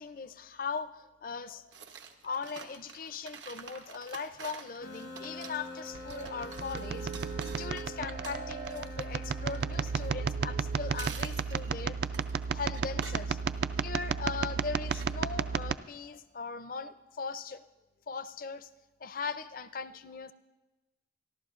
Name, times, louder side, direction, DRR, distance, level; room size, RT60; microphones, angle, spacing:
voice 1, 0.0-1.9 2.2-7.3 7.6-12.0 12.5-13.4 13.8-17.7 18.1-18.7 19.0-20.3, left 5 dB, 50° left, 13 dB, 0.5 m, -39 dB
sound 1, 1.7-10.6 10.8-14.4 14.9-15.5, right 6 dB, 85° right, 0.9 m, -48 dB
sound 2, 4.8-11.2, left 2 dB, 70° left, 0.9 m, -46 dB
sound 3, 5.9-15.8, right 6 dB, 60° right, 0.3 m, -33 dB
27.5 x 11.5 x 2.5 m, 1.1 s
head